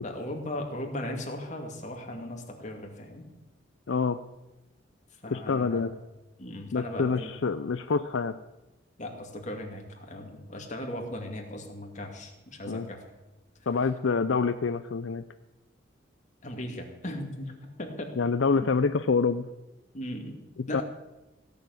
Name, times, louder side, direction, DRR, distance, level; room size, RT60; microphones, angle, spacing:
voice 1, 0.0-3.3 5.2-5.8 6.4-7.3 9.0-13.0 16.4-18.1 19.9-20.4 20.7-20.8, left 1 dB, 40° left, 2 dB, 2.4 m, -37 dB
voice 2, 3.9-4.2 5.3-5.9 6.7-8.4 12.7-12.9 13.7-15.2 18.2-19.5 20.6-20.8, left 4 dB, 75° left, 10 dB, 0.5 m, -26 dB
16.5 x 7.1 x 9.5 m, 1.0 s
head